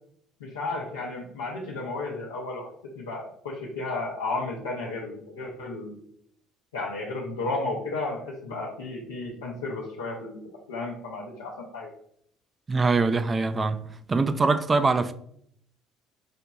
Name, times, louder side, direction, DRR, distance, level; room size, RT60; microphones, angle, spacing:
voice 1, 0.4-6.0 6.7-10.4 10.7-11.9, left 2 dB, 90° left, 0.6 m, -33 dB
voice 2, 12.7-15.1, right 3 dB, 30° right, 0.4 m, -23 dB
5.1 x 2.9 x 2.3 m
hypercardioid pair, 60°, 0 cm